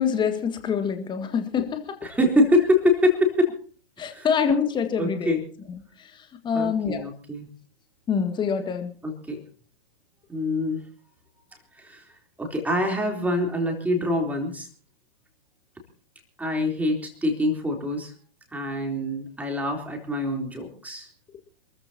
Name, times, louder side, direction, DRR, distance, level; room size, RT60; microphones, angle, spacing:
voice 1, 0.0-2.0 4.0-5.4 6.4-7.0 8.1-8.9, left 6 dB, 15° left, 7 dB, 1.8 m, -25 dB
voice 2, 2.0-3.6 4.1-4.3 5.0-5.4 6.5-7.5 9.0-9.4 10.3-10.8 11.8-12.1 12.4-14.7 16.4-18.1 18.5-21.1, left 1 dB, 5° right, 2 dB, 3.6 m, -25 dB
27.5 x 14.0 x 2.9 m, 0.41 s
figure-of-eight pair, 115°, 32 cm